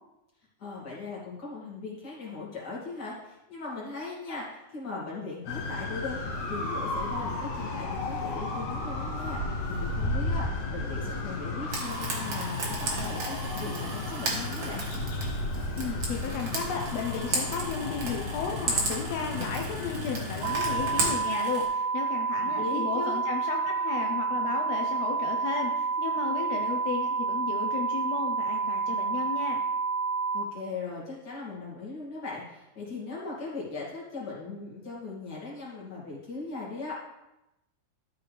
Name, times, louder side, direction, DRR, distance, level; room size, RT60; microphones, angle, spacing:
voice 1, 0.6-6.2 6.5-9.4 9.7-14.9 22.4-23.2 30.3-36.9, left 3 dB, 30° left, -6 dB, 2.6 m, -39 dB
sound 1, 5.5-21.2, left 2 dB, 60° left, 2.0 m, -33 dB
Frying (food), 11.7-21.6, right 3 dB, 45° right, 1.8 m, -35 dB
voice 2, 15.8-29.6, left 5 dB, 80° left, 1 dB, 1.4 m, -34 dB
sound 2, 20.4-30.4, right 4 dB, 80° right, 2.3 m, -29 dB
12.5 x 6.0 x 3.4 m, 0.92 s
omnidirectional pair, 3.9 m